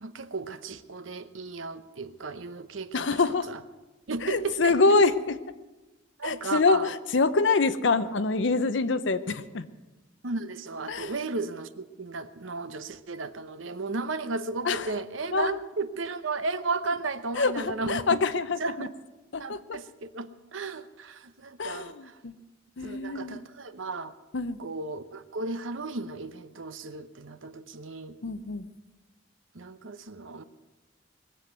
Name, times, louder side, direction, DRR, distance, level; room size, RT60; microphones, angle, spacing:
voice 1, 0.0-3.2 3.5-3.6 4.1-5.2 6.2-6.9 10.2-18.2 18.6-18.9 19.4-22.2 22.8-24.1 24.6-28.2 29.5-30.4, right 3 dB, 85° right, 12 dB, 0.8 m, -34 dB
voice 2, 2.9-3.5 4.2-5.4 6.2-9.7 10.9-11.1 14.6-14.9 15.3-15.6 17.3-18.9 19.3-19.8 21.6-22.3 22.8-23.5 24.3-24.6 28.2-28.7, left 3 dB, 65° left, 13 dB, 0.7 m, -25 dB
20.5 x 7.8 x 8.0 m, 1.1 s
head